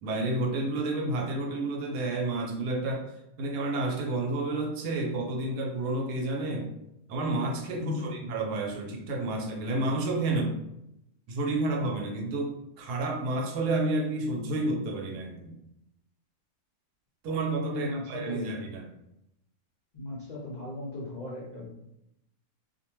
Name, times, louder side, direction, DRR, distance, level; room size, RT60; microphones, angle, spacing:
voice 1, 0.0-3.0 3.4-6.7 7.1-10.5 11.3-15.6 17.2-18.8, right 2 dB, 90° right, 1 dB, 1.2 m, -30 dB
voice 2, 7.8-8.2 17.7-18.5 19.9-21.7, left 2 dB, 75° left, -5 dB, 0.4 m, -37 dB
2.7 x 2.2 x 2.9 m, 0.82 s
omnidirectional pair, 1.6 m